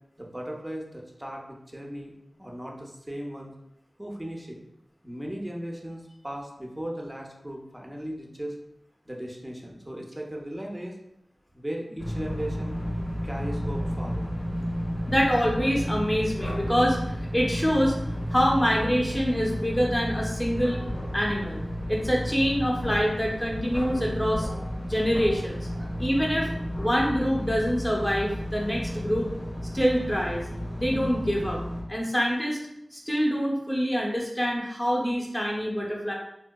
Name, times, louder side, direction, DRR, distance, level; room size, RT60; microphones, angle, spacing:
voice 1, 0.2-3.5 4.0-4.6 5.0-8.5 9.0-11.0 11.5-12.8 13.2-14.3 25.8-25.9, equal, 20° right, 0 dB, 0.6 m, -37 dB
sound 1, 12.0-31.8, equal, 70° left, 1.0 m, -32 dB
voice 2, 15.1-17.9 18.3-20.8 21.1-21.6 21.9-24.5 24.8-25.7 26.0-26.5 26.8-29.3 29.7-30.5 30.8-31.6 31.9-32.6 32.9-36.1, equal, 15° left, -2 dB, 0.8 m, -25 dB
3.5 x 2.7 x 2.2 m, 0.82 s
wide cardioid pair, 50°, 0 cm